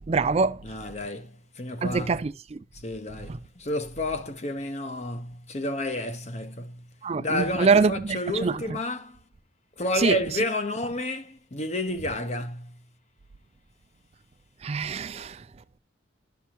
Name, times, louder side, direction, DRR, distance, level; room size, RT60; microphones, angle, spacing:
voice 1, 0.1-0.6 1.8-2.6 3.3-3.4 7.0-8.6 10.0-10.2 14.6-15.4, right 4 dB, 35° right, 0.4 m, -24 dB
voice 2, 0.6-2.2 2.7-6.9 7.2-9.2 9.8-12.8, left 1 dB, 40° left, 1.0 m, -31 dB
11.5 x 5.7 x 2.9 m
head